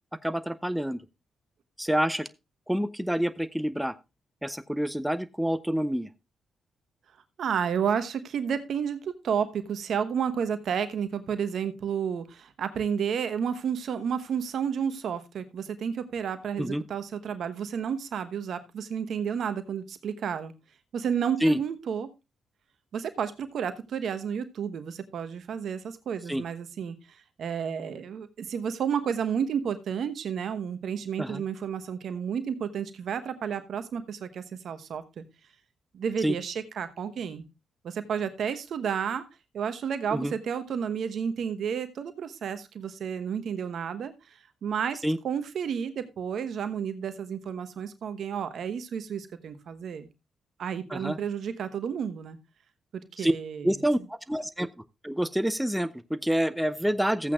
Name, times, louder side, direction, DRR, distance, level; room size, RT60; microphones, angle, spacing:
voice 1, 0.2-1.0 1.8-2.3 2.7-3.9 4.4-6.1 16.6-16.8 21.4-21.6 26.3-26.4 31.2-31.4 36.2-36.3 40.1-40.3 45.0-45.2 50.9-51.2 53.2-53.3 53.6-54.7 55.0-57.3, equal, 5° right, 12 dB, 0.7 m, -27 dB
voice 2, 7.4-20.5 20.9-22.1 22.9-35.2 35.9-37.4 37.8-39.2 39.5-50.1 50.6-52.4 52.9-53.8, right 7 dB, 65° right, 11 dB, 1.1 m, -31 dB
15.0 x 8.4 x 2.4 m, 0.25 s
hypercardioid pair, 45°, 0 cm